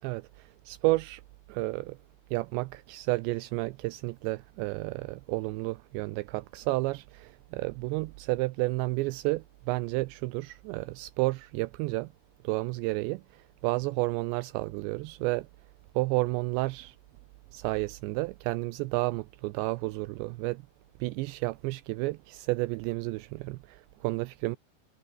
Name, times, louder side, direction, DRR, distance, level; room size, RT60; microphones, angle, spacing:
voice 1, 0.0-1.2 1.5-2.0 2.3-12.1 12.4-15.5 16.0-17.0 17.5-20.6 21.0-24.6, right 21 dB, 85° right, 2.7 m, -31 dB
omnidirectional pair, 5.3 m